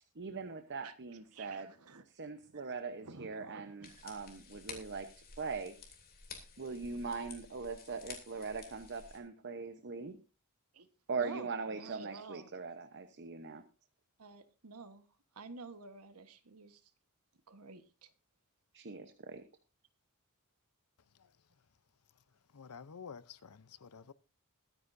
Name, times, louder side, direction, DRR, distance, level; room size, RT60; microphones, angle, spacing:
voice 1, 0.2-1.7 2.1-5.1 5.4-5.7 6.6-10.2 11.1-13.6 18.7-19.4, right 4 dB, 55° right, 0.9 m, -41 dB
voice 2, 1.3-2.0 2.4-4.2 10.7-10.9 11.2-12.6 14.2-15.0 15.3-16.9 17.5-18.1, right 4 dB, 80° right, 1.3 m, -50 dB
sound 1, 3.8-9.2, left 5 dB, 45° left, 3.1 m, -52 dB
voice 3, 22.5-24.1, left 6 dB, 85° left, 0.7 m, -50 dB
21.5 x 9.8 x 2.7 m
head